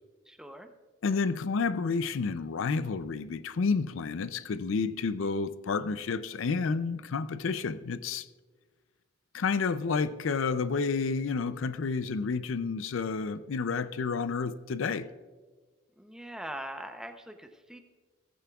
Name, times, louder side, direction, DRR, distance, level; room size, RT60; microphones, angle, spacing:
voice 1, 0.3-0.7 16.0-17.8, right 1 dB, 5° right, 0.7 m, -42 dB
voice 2, 1.0-8.3 9.3-15.1, left 4 dB, 75° left, 0.4 m, -30 dB
16.0 x 15.0 x 2.3 m
head